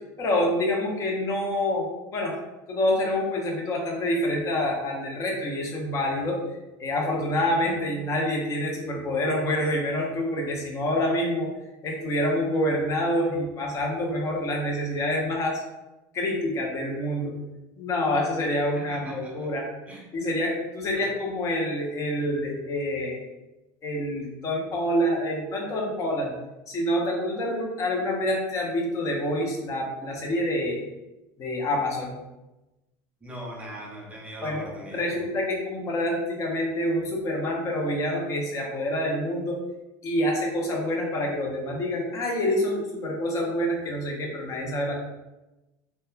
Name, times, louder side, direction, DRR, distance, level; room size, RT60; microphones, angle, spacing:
voice 1, 0.2-2.4 2.7-6.4 6.8-11.5 11.8-15.6 16.1-17.3 17.8-19.7 20.1-23.2 23.8-26.3 26.7-30.8 31.4-32.2 34.4-39.6 40.0-44.9, left 1 dB, 30° left, -1 dB, 0.6 m, -27 dB
voice 2, 18.8-19.5 19.9-20.0 21.0-21.1 33.2-35.1, right 1 dB, 10° right, -3 dB, 0.6 m, -40 dB
2.8 x 2.1 x 2.2 m, 1.0 s
supercardioid pair, 145°, 10 cm